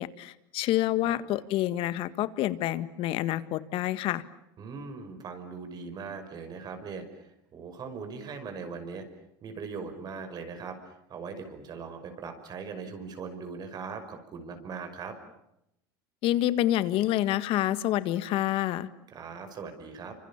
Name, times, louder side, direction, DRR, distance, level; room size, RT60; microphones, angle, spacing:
voice 1, 0.0-4.2 16.2-18.9, left 14 dB, 55° left, 14 dB, 1.7 m, -28 dB
voice 2, 4.6-9.1 9.4-15.2 19.1-20.2, right 5 dB, 40° right, 7 dB, 5.7 m, -40 dB
29.0 x 26.0 x 7.3 m, 0.82 s
supercardioid pair, 115°, 11 cm